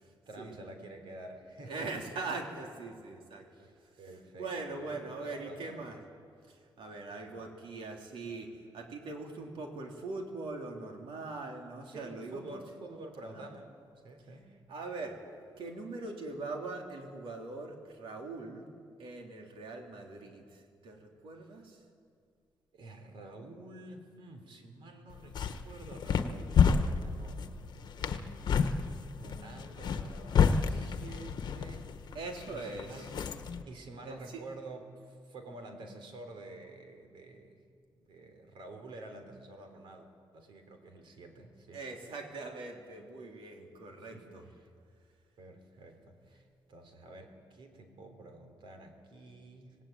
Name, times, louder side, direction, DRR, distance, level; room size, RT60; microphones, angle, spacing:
voice 1, 0.3-2.1 3.5-5.9 7.1-7.5 11.9-13.7 14.0-14.5 22.7-27.4 28.0-28.4 29.1-32.2 32.5-33.2 33.7-37.6 38.0-40.1 40.3-41.8 44.1-44.7 45.4-49.8, right 2 dB, 70° right, 6 dB, 3.6 m, -49 dB
voice 2, 1.6-3.7 4.3-6.0 6.5-12.6 13.3-13.5 14.7-15.2 15.6-18.6 19.0-21.8 32.1-33.1 34.0-34.4 41.7-44.4, right 3 dB, 85° right, 2 dB, 3.6 m, -41 dB
sound 1, 25.1-33.6, left 6 dB, 55° left, 1.1 m, -30 dB
25.5 x 19.0 x 9.0 m, 2.2 s
wide cardioid pair, 170°, 9 cm